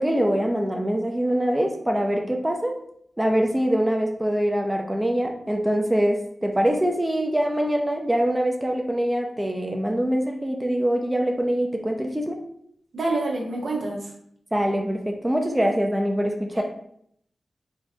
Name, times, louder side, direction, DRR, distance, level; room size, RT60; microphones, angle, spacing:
voice 1, 0.0-2.8 3.2-12.4 14.5-16.6, equal, 15° right, 2 dB, 0.5 m, -24 dB
voice 2, 12.9-14.1 16.5-16.6, right 2 dB, 80° right, -1 dB, 0.9 m, -27 dB
3.8 x 2.2 x 3.7 m, 0.68 s
cardioid pair, 55°, 0 cm